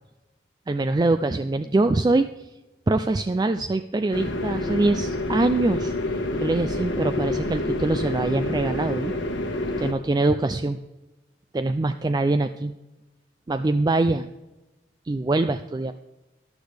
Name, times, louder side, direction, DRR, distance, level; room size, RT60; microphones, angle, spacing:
voice 1, 0.7-2.5 2.9-5.9 6.4-9.1 9.8-10.8 11.5-12.7 13.5-14.3 15.1-15.9, right 2 dB, 20° right, 10 dB, 0.3 m, -23 dB
sound 1, 4.1-9.9, left 1 dB, 80° left, 1.5 m, -28 dB
14.5 x 11.5 x 3.4 m, 1.1 s
head